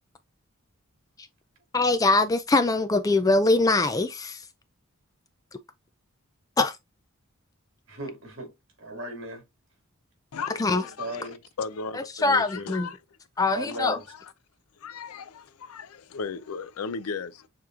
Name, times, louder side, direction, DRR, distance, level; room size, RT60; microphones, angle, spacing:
voice 1, 1.7-4.4 6.6-6.7 10.6-10.8 11.9-12.9 13.4-14.0, left 3 dB, 15° left, 0.3 m, -23 dB
voice 2, 7.9-9.4 10.7-11.4 12.6-12.7 13.5-14.1, right 1 dB, 60° right, 2.1 m, -37 dB
voice 3, 10.3-11.2 11.6-13.0 13.7-13.8 14.8-17.5, left 5 dB, 90° left, 0.5 m, -36 dB
6.8 x 3.0 x 2.4 m
head